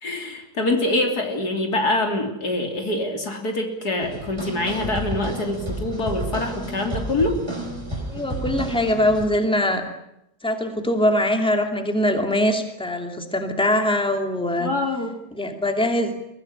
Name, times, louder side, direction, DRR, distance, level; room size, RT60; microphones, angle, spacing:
voice 1, 0.0-7.4 14.6-15.2, left 2 dB, 75° left, 4 dB, 3.9 m, -25 dB
sound 1, 4.0-9.3, right 1 dB, 15° right, 4.8 m, -31 dB
voice 2, 8.1-9.8 10.4-14.7 15.3-16.2, left 1 dB, 5° left, 5 dB, 2.7 m, -22 dB
23.5 x 16.5 x 9.9 m, 0.83 s
omnidirectional pair, 1.7 m